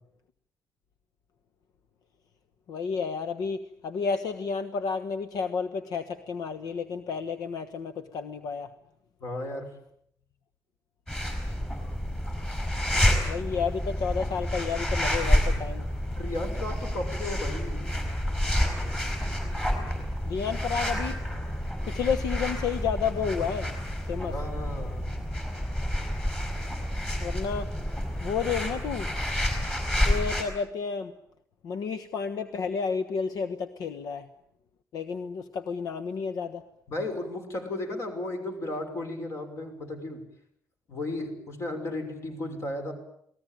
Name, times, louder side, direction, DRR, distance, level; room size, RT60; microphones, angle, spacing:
voice 1, 2.7-8.7 13.2-15.8 20.2-21.2 21.8-23.7 24.1-24.4 27.2-27.7 28.2-29.1 30.0-31.1 31.6-34.3 34.9-36.6, left 6 dB, 75° left, 11 dB, 1.3 m, -31 dB
voice 2, 9.2-9.7 16.2-17.9 18.6-18.7 24.3-25.2 36.9-40.2 40.9-42.9, left 2 dB, 45° left, 6 dB, 5.9 m, -34 dB
sound 1, 11.1-30.4, equal, 15° left, 6.1 m, -29 dB
28.5 x 19.5 x 9.1 m, 0.70 s
cardioid pair, 165°, 6 cm